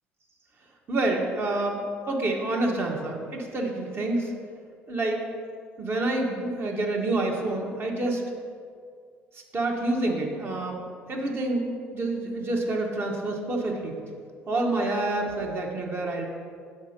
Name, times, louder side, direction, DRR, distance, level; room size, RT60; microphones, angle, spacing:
voice 1, 0.9-1.8 2.1-4.3 4.9-5.3 5.8-8.2 9.5-10.8 11.1-14.0 14.5-16.3, right 2 dB, 40° right, 0 dB, 1.5 m, -27 dB
7.2 x 4.3 x 6.6 m, 2.1 s
hypercardioid pair, 55°, 6 cm